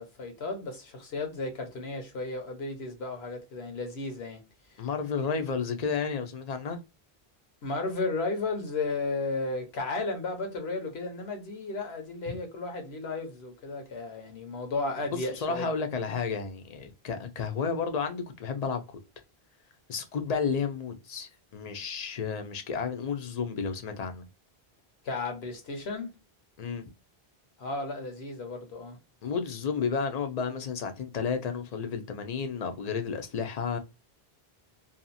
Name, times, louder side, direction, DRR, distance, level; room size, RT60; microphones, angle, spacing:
voice 1, 0.0-4.4 4.7-4.9 7.6-15.7 25.0-26.2 27.6-29.0, left 3 dB, 75° left, 1.1 m, -34 dB
voice 2, 4.8-6.8 12.3-12.4 15.2-18.8 19.9-24.3 26.6-26.9 29.2-33.8, left 5 dB, 50° left, 0.5 m, -32 dB
2.7 x 2.4 x 2.5 m
omnidirectional pair, 1.1 m